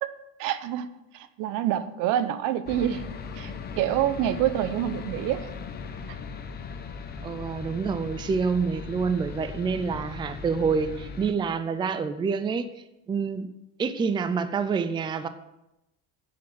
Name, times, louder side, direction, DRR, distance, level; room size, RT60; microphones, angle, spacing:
voice 1, 0.0-0.9 1.1-5.5, right 11 dB, 70° right, 13 dB, 0.9 m, -27 dB
sound 1, 2.7-11.3, left 5 dB, 30° left, 0.9 m, -38 dB
voice 2, 7.2-12.7 13.1-13.5 13.8-15.3, right 5 dB, 15° right, 11 dB, 0.4 m, -27 dB
10.0 x 7.7 x 5.8 m, 0.92 s
cardioid pair, 155°, 34 cm